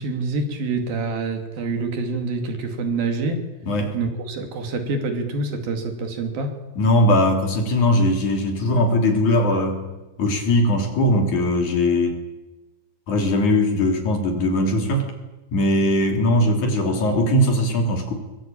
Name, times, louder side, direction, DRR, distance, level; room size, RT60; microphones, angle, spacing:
voice 1, 0.0-3.4 3.9-6.6, right 3 dB, 75° right, 5 dB, 4.4 m, -26 dB
voice 2, 6.8-9.9 10.2-12.2 13.1-15.1 15.5-18.1, left 1 dB, 55° left, 3 dB, 4.7 m, -20 dB
23.0 x 22.5 x 8.9 m, 1.1 s
omnidirectional pair, 4.1 m